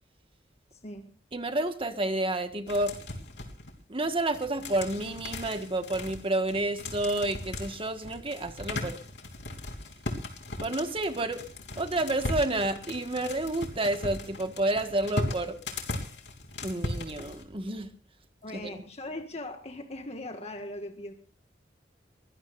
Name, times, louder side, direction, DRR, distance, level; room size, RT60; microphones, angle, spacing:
voice 1, 0.7-1.1 18.4-21.1, left 1 dB, 35° left, 4 dB, 1.7 m, -39 dB
voice 2, 1.3-2.9 3.9-9.0 10.6-11.4 11.8-15.6 16.6-17.9 18.5-18.8, right 2 dB, 30° right, 7 dB, 1.6 m, -30 dB
sound 1, 2.7-3.7 4.0-17.4, left 2 dB, 70° left, 3.3 m, -38 dB
22.5 x 18.0 x 2.6 m, 0.37 s
head